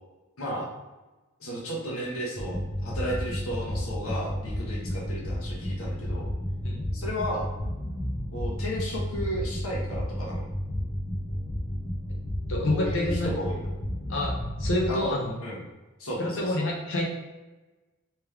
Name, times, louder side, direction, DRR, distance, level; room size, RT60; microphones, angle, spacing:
voice 1, 0.4-0.7 1.4-6.3 6.9-7.5 8.3-10.5 12.6-13.6 14.9-15.6 16.0-16.7, equal, 75° left, -4 dB, 1.1 m, -34 dB
sound 1, 2.4-15.0, equal, 25° left, 0.9 m, -32 dB
voice 2, 12.5-13.3 14.1-14.3 14.6-15.3 16.2-17.0, left 1 dB, 60° left, -1 dB, 0.7 m, -27 dB
3.3 x 3.1 x 3.4 m, 1.1 s
head